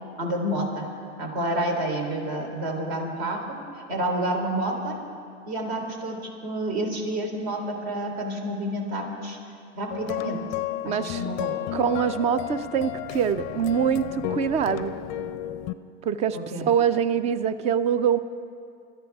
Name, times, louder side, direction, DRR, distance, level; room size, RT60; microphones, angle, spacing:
voice 1, 0.2-0.9 1.2-5.0 5.5-9.4 9.7-10.4 10.8-11.6 16.3-16.7, right 1 dB, 55° right, 1 dB, 3.6 m, -29 dB
sound 1, 9.9-15.7, left 11 dB, 35° left, 0.5 m, -32 dB
voice 2, 10.8-11.2 11.7-14.9 16.1-18.2, right 7 dB, 20° right, 14 dB, 0.4 m, -24 dB
25.5 x 13.5 x 3.5 m, 2.4 s
hypercardioid pair, 120°, 37 cm